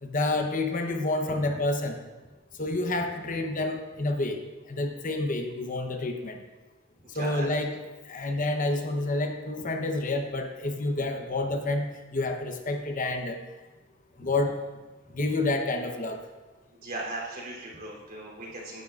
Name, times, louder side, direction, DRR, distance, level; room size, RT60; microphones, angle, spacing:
voice 1, 0.0-2.0 2.6-4.4 4.7-6.4 7.2-7.8 8.1-13.4 14.2-14.5 15.1-16.2, left 2 dB, 40° left, 4 dB, 0.9 m, -29 dB
voice 2, 7.1-7.5 14.2-14.3 15.1-15.3 16.8-18.8, right 2 dB, 45° right, -2 dB, 3.2 m, -38 dB
18.0 x 10.5 x 2.4 m, 1.2 s
head